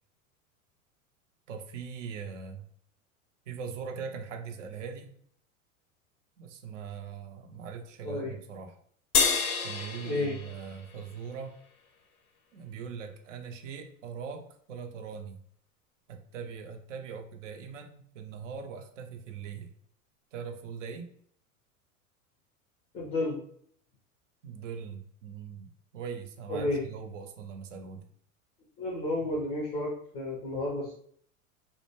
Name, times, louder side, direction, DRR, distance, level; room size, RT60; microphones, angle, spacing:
voice 1, 1.5-2.7 3.5-5.1 6.4-8.8 9.6-11.6 12.5-15.4 16.1-19.7 20.3-21.1 24.4-28.1, right 6 dB, 60° right, 5 dB, 0.5 m, -41 dB
voice 2, 8.0-8.4 10.0-10.4 22.9-23.4 26.5-26.8 28.8-30.9, left 2 dB, 15° left, -3 dB, 0.3 m, -31 dB
sound 1, 9.1-11.7, left 5 dB, 85° left, 0.5 m, -30 dB
2.2 x 2.1 x 2.9 m, 0.62 s
figure-of-eight pair, 90°, 42 cm